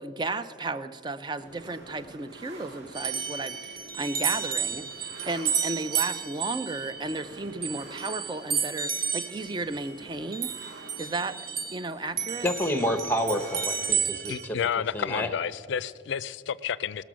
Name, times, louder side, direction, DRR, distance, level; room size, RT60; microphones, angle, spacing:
voice 1, 0.0-10.5 11.0-11.4 11.7-12.5, right 3 dB, 20° right, 12 dB, 0.4 m, -34 dB
sound 1, 1.4-13.9, right 2 dB, 80° right, 1.2 m, -48 dB
sound 2, 2.9-11.9 12.2-14.5, right 7 dB, 50° right, 0.7 m, -32 dB
voice 2, 12.4-14.6 14.9-15.3, equal, 10° left, 8 dB, 0.7 m, -28 dB
voice 3, 14.3-17.0, left 8 dB, 70° left, 18 dB, 0.4 m, -30 dB
20.0 x 6.8 x 6.2 m, 2.3 s
head